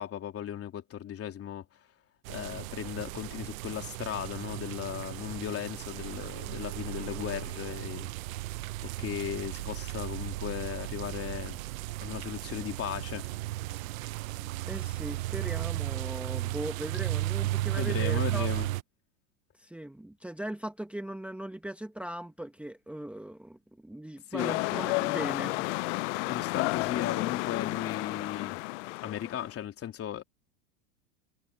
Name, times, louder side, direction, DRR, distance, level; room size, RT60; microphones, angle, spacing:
voice 1, 0.0-1.6 2.3-8.1 8.8-11.6 12.0-13.3 17.8-18.7 24.3-24.5 26.2-28.6 29.0-30.2, left 10 dB, 35° left, 3.4 m, -36 dB
sound 1, 2.3-18.8, right 17 dB, 70° right, 0.9 m, -35 dB
voice 2, 14.7-18.5 19.5-25.7, right 1 dB, 5° right, 1.6 m, -39 dB
sound 2, 24.4-29.5, left 26 dB, 60° left, 0.5 m, -32 dB
hypercardioid pair, 100°, 42 cm